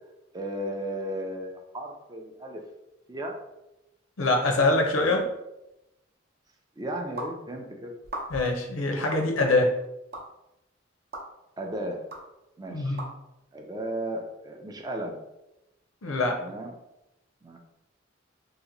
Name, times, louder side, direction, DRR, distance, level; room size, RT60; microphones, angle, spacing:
voice 1, 0.3-2.6 3.1-3.3 6.8-7.9 11.6-12.0 12.6-13.0 13.5-15.2 16.4-16.7 17.4-17.6, right 1 dB, 20° right, 2 dB, 0.4 m, -35 dB
voice 2, 4.2-5.3 8.3-9.7 12.7-13.1 16.0-16.4, left 2 dB, 85° left, 3 dB, 0.6 m, -24 dB
sound 1, 7.2-7.3 8.0-8.5 9.1-9.2 10.1-10.2 11.1-11.3 12.1-12.2 13.0-13.1, right 1 dB, 50° right, 0.7 m, -36 dB
2.9 x 2.1 x 3.8 m, 0.91 s
head